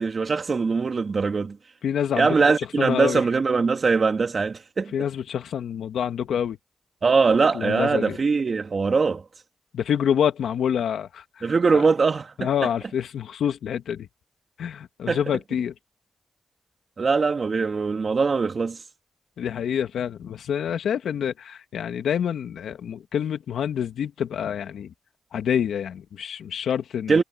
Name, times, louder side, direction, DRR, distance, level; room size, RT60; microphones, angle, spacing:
voice 1, 0.0-1.6 2.1-4.9 7.0-9.2 11.4-12.5 15.1-15.2 17.0-18.8 27.1-27.2, right 4 dB, 60° right, 2.8 m, -22 dB
voice 2, 1.8-2.5 2.8-3.2 4.9-6.6 7.5-8.2 9.7-11.8 12.4-14.1 14.6-15.7 19.4-24.9 25.3-27.2, left 8 dB, 85° left, 2.1 m, -27 dB
supercardioid pair, 40°, 0 cm